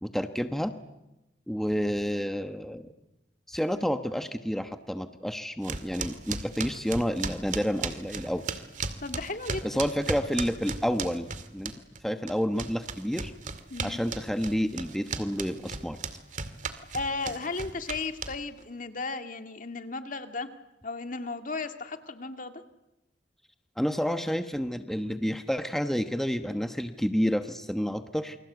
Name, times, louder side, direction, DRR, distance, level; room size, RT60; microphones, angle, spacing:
voice 1, 0.0-0.7 1.5-2.8 3.5-8.4 9.6-11.7 12.0-13.3 13.8-16.0 23.8-28.4, equal, ahead, 7 dB, 1.1 m, -29 dB
sound 1, 5.6-12.0 12.3-18.6, right 4 dB, 45° right, 2.2 m, -35 dB
voice 2, 9.0-9.9 13.7-14.0 16.9-20.5 20.8-22.6, left 3 dB, 50° left, 7 dB, 2.1 m, -35 dB
29.0 x 25.0 x 8.1 m, 0.94 s
head